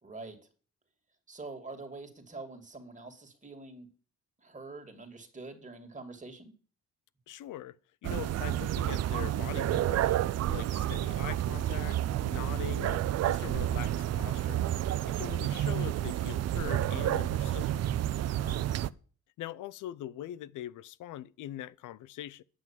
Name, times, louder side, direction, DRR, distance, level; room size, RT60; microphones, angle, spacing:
voice 1, 0.0-0.4 1.3-3.9 4.4-6.5 18.3-18.7, right 3 dB, 25° right, 2.4 m, -45 dB
voice 2, 7.3-7.8 8.0-10.2 10.5-14.6 15.1-17.7 19.4-22.4, left 13 dB, 80° left, 0.6 m, -42 dB
sound 1, 8.0-18.9, right 12 dB, 55° right, 0.5 m, -30 dB
9.6 x 6.0 x 7.3 m
cardioid pair, 90°, 30 cm